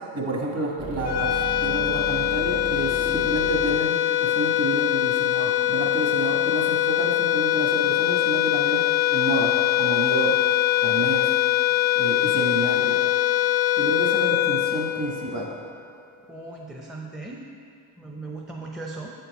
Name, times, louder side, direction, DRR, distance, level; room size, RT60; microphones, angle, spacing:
voice 1, 0.1-8.8 9.1-9.5 9.8-10.4 10.8-11.3 11.9-13.0 13.8-15.5, right 2 dB, 35° right, -1 dB, 1.4 m, -29 dB
sound 1, 0.8-5.9, right 1 dB, 75° right, 1.3 m, -36 dB
sound 2, 1.0-15.6, left 13 dB, 90° left, 0.5 m, -23 dB
voice 2, 16.3-17.5 18.0-19.1, right 2 dB, ahead, -2 dB, 0.5 m, -37 dB
7.3 x 4.4 x 4.1 m, 2.5 s
cardioid pair, 75°, 45 cm